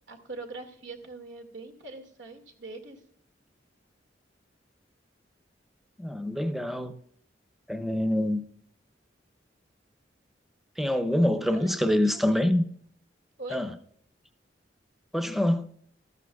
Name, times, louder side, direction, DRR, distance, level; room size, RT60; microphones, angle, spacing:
voice 1, 0.1-3.0 11.4-12.5 13.4-13.6, right 2 dB, 90° right, 2.1 m, -42 dB
voice 2, 6.0-6.9 7.7-8.4 10.8-12.6 13.5-13.7 15.1-15.7, left 1 dB, ahead, 0.7 m, -25 dB
15.0 x 13.0 x 2.3 m
head